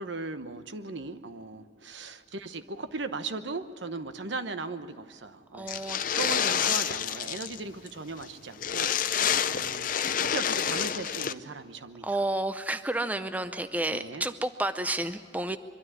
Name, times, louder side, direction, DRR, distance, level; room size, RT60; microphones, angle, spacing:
voice 1, 0.0-5.8 6.2-8.9 9.5-12.2 13.9-14.2, right 3 dB, 75° right, 10 dB, 1.0 m, -38 dB
voice 2, 5.5-6.0 12.0-15.6, right 1 dB, 10° right, 10 dB, 0.5 m, -31 dB
sound 1, 5.7-7.6 7.9-8.0 8.2-8.3 8.6-11.3, left 8 dB, 45° left, 0.6 m, -28 dB
23.5 x 13.0 x 9.7 m, 2.3 s
head